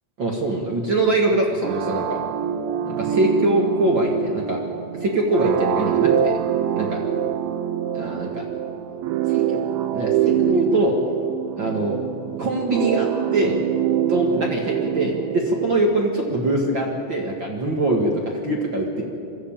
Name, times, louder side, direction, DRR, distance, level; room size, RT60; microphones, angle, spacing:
voice 1, 0.2-2.2 2.9-4.6 5.0-6.4 6.7-7.0 7.9-8.4 9.3-9.6 9.9-11.0 11.6-12.0 12.4-13.6 14.1-19.0, right 2 dB, 45° right, 0 dB, 1.8 m, -22 dB
sound 1, 1.6-16.2, right 9 dB, 80° right, 2.8 m, -25 dB
22.0 x 14.5 x 8.8 m, 2.5 s
omnidirectional pair, 4.4 m